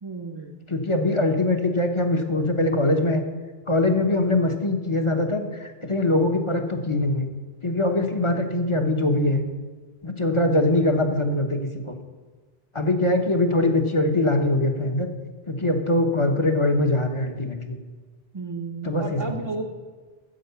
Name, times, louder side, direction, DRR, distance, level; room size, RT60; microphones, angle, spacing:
voice 1, 0.0-0.6 8.4-8.9 18.3-19.7, right 3 dB, 30° right, 0 dB, 0.7 m, -33 dB
voice 2, 0.7-3.2 3.7-7.3 7.6-9.4 10.0-11.6 11.9-12.0 12.7-15.1 15.5-17.8 18.8-19.2, left 2 dB, 30° left, 5 dB, 0.9 m, -22 dB
9.1 x 7.6 x 6.8 m, 1.4 s
omnidirectional pair, 1.1 m